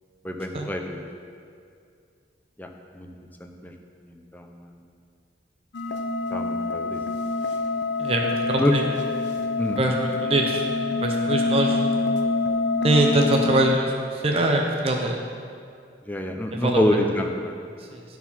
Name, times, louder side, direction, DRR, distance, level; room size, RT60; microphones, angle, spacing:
voice 1, 0.2-1.0 2.6-2.7 2.9-3.1 3.4-3.7 4.1-4.8 6.3-7.0 8.6-8.7 9.6-9.8 16.1-17.5, left 1 dB, 10° left, 3 dB, 0.6 m, -26 dB
sound 1, 5.7-13.8, left 3 dB, 80° left, 0.6 m, -26 dB
voice 2, 8.0-8.9 9.8-10.6 11.0-11.8 12.8-15.2 16.5-16.8 17.9-18.0, right 2 dB, 35° right, 1 dB, 0.6 m, -23 dB
11.5 x 4.6 x 5.6 m, 2.3 s
head